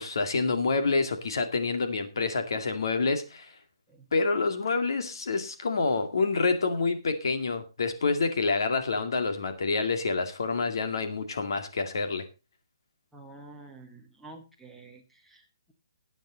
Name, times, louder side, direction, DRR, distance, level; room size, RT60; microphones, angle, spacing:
voice 1, 0.0-3.5 4.1-12.2, left 4 dB, 60° left, 7 dB, 2.2 m, -27 dB
voice 2, 13.1-15.7, right 2 dB, ahead, -2 dB, 1.2 m, -49 dB
14.0 x 9.1 x 3.9 m, 0.30 s
hypercardioid pair, 175°, 3 cm